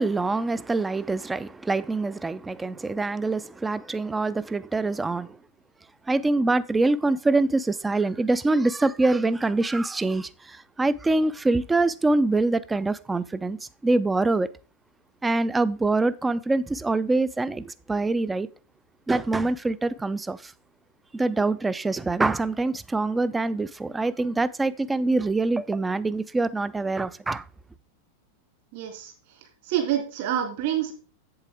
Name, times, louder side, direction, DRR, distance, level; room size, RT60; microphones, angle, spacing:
voice 1, 0.0-5.4 6.1-14.5 15.2-18.5 19.1-20.5 21.1-27.4, right 2 dB, 10° right, 0.5 m, -25 dB
voice 2, 28.7-30.9, right 10 dB, 50° right, 2.5 m, -28 dB
8.2 x 7.8 x 3.4 m
figure-of-eight pair, 90°, 0 cm